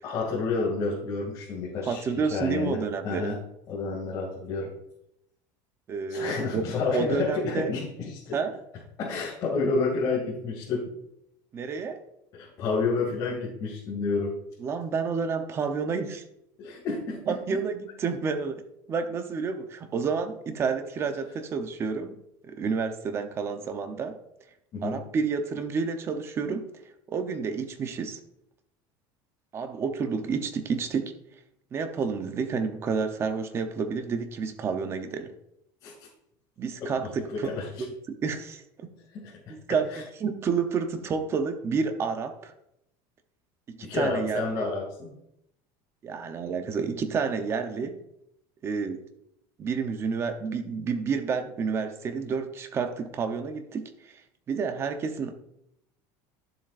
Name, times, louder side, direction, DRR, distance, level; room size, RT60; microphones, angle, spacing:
voice 1, 0.0-3.4 3.7-4.7 6.1-8.4 9.0-10.9 12.3-14.3 16.6-17.4 24.7-25.0 35.8-35.9 36.8-37.8 39.1-40.0 43.8-45.1, left 4 dB, 35° left, -6 dB, 2.5 m, -30 dB
voice 2, 1.9-3.3 5.9-6.6 6.9-7.7 8.3-8.5 11.5-12.0 14.6-16.2 17.3-18.6 18.9-22.1 22.4-24.2 24.8-26.6 27.1-28.2 29.5-31.1 31.7-35.3 36.6-37.5 37.8-37.9 38.2-38.6 39.5-39.8 40.2-42.5 43.7-44.7 46.0-48.0 48.6-49.0 49.6-54.1 54.5-55.3, right 5 dB, 25° right, 7 dB, 0.8 m, -29 dB
12.0 x 7.4 x 2.5 m, 0.80 s
cardioid pair, 160°, 10 cm